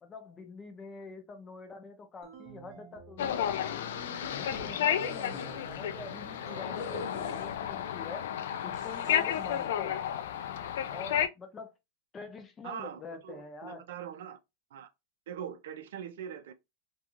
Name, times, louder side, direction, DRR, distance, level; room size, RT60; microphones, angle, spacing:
voice 1, 0.0-4.0 4.4-8.3 8.6-10.1 10.9-11.7 12.1-13.8, left 4 dB, 20° left, 0.5 m, -46 dB
sound 1, 2.2-4.8 5.2-7.1, right 7 dB, 35° right, 0.6 m, -51 dB
sound 2, 3.2-11.3, left 9 dB, 80° left, 0.3 m, -32 dB
sound 3, 4.9-5.8 6.7-7.8 8.7-9.7, left 3 dB, 60° left, 0.9 m, -43 dB
voice 2, 12.6-14.4 14.7-14.9 15.3-16.5, right 8 dB, 80° right, 0.4 m, -42 dB
2.5 x 2.3 x 2.9 m
supercardioid pair, 145°, 0 cm